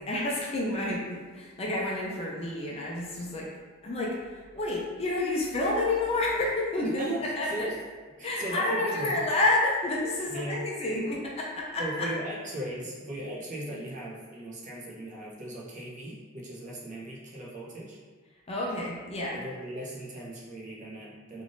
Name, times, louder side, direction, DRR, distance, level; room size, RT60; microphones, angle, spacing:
voice 1, 0.1-3.5 3.8-7.1 7.4-7.7 8.2-12.1 18.5-19.4, left 2 dB, 25° left, -3 dB, 0.4 m, -29 dB
voice 2, 6.8-7.8 8.2-9.2 10.3-10.6 11.8-18.0 19.3-21.4, right 1 dB, 35° right, -5 dB, 0.6 m, -37 dB
3.3 x 2.5 x 2.5 m, 1.5 s
head